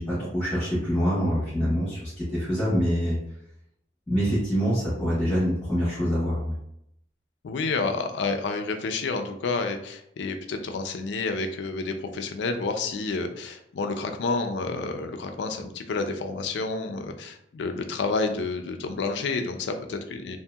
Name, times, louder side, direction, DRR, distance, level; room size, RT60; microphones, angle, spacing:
voice 1, 0.0-3.2 4.1-6.6, equal, 10° left, -11 dB, 1.0 m, -25 dB
voice 2, 7.4-20.4, left 3 dB, 75° left, 5 dB, 0.4 m, -29 dB
2.7 x 2.6 x 2.3 m, 0.76 s
head